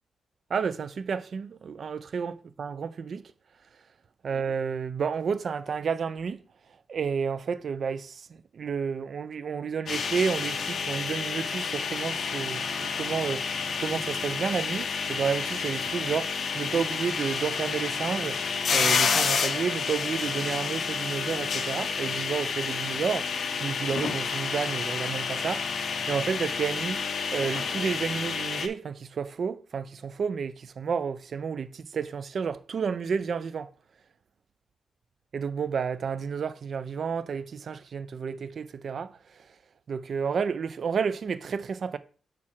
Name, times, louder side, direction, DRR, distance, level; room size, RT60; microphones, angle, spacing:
voice 1, 0.5-3.3 4.2-6.4 6.9-13.5 13.8-27.0 27.3-33.7 35.3-39.5 39.9-42.0, right 6 dB, 55° right, 0.5 m, -31 dB
sound 1, 9.9-28.7, left 5 dB, 65° left, 0.7 m, -30 dB
4.8 x 4.6 x 5.7 m
wide cardioid pair, 125°, 0 cm